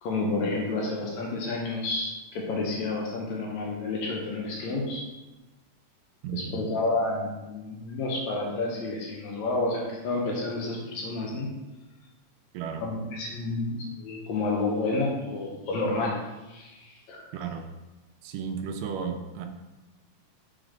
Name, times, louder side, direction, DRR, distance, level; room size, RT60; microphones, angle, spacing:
voice 1, 0.0-5.1 6.3-11.5 12.8-16.2 16.5-17.3, left 2 dB, 70° left, -1 dB, 2.1 m, -30 dB
voice 2, 6.2-6.6 12.5-12.8 17.3-17.7 18.2-19.5, right 6 dB, 85° right, 6 dB, 2.2 m, -34 dB
6.3 x 4.0 x 5.0 m, 1.1 s
omnidirectional pair, 3.8 m